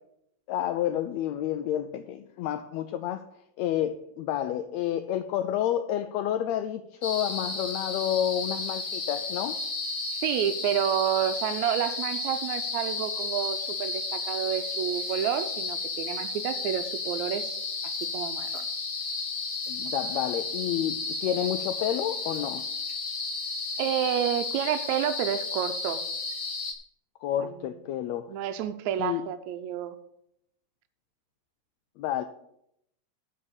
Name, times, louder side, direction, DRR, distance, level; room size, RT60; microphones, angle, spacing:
voice 1, 0.5-3.2 3.6-9.6 19.7-22.6 27.2-28.3 29.0-29.3 32.0-32.2, left 11 dB, 80° left, 1.7 m, -30 dB
sound 1, 7.0-26.7, left 3 dB, 45° left, 1.0 m, -33 dB
voice 2, 10.2-17.6 18.0-18.6 23.8-26.0 27.4-27.5 28.3-30.0, right 10 dB, 80° right, 1.9 m, -29 dB
13.0 x 4.3 x 7.1 m
omnidirectional pair, 3.4 m